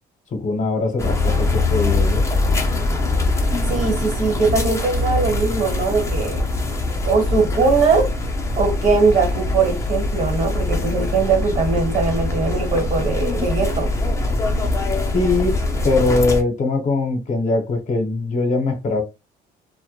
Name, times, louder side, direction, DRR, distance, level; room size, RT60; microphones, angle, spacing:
voice 1, 0.3-2.2 15.1-19.0, left 3 dB, 50° left, 0.8 m, -21 dB
sound 1, 1.0-16.4, left 2 dB, 15° left, 0.5 m, -22 dB
voice 2, 3.7-6.4 7.0-8.1 8.6-13.9, right 4 dB, 50° right, 1.2 m, -20 dB
2.1 x 2.1 x 2.8 m
cardioid pair, 110°, 17 cm